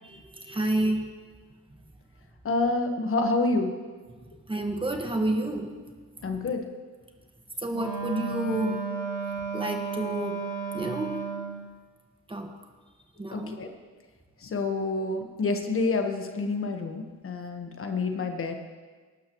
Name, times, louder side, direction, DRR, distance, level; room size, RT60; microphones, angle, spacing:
voice 1, 0.0-1.1 4.5-5.7 7.6-8.8 9.5-10.4 10.7-11.2 12.3-12.5 13.2-13.6, right 1 dB, 15° right, 3 dB, 1.7 m, -29 dB
voice 2, 2.4-3.8 6.2-6.6 13.3-13.7 14.4-18.5, left 3 dB, 45° left, 4 dB, 1.4 m, -28 dB
Wind instrument woodwind instrument, 7.7-11.6, right 5 dB, 80° left, 4.6 m, -33 dB
18.0 x 12.5 x 3.2 m, 1.5 s
cardioid pair, 90°, 30 cm